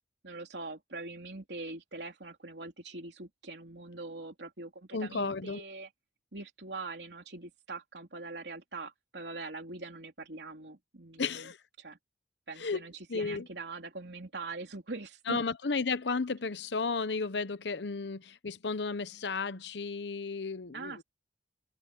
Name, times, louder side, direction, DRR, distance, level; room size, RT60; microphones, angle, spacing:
voice 1, 0.2-5.9 6.3-12.0 12.5-15.5 20.7-21.0, right 3 dB, 70° right, 3.6 m, -43 dB
voice 2, 4.9-5.6 11.2-11.6 12.6-12.8 13.1-13.5 15.3-21.0, left 4 dB, 70° left, 0.8 m, -33 dB
head